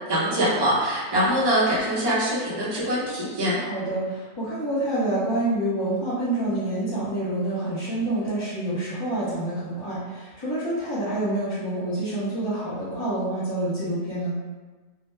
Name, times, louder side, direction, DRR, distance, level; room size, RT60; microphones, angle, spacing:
voice 1, 0.1-3.6, right 1 dB, 25° right, -7 dB, 0.5 m, -23 dB
voice 2, 3.6-14.3, right 1 dB, 25° left, -12 dB, 0.6 m, -27 dB
2.8 x 2.1 x 3.2 m, 1.3 s
omnidirectional pair, 1.5 m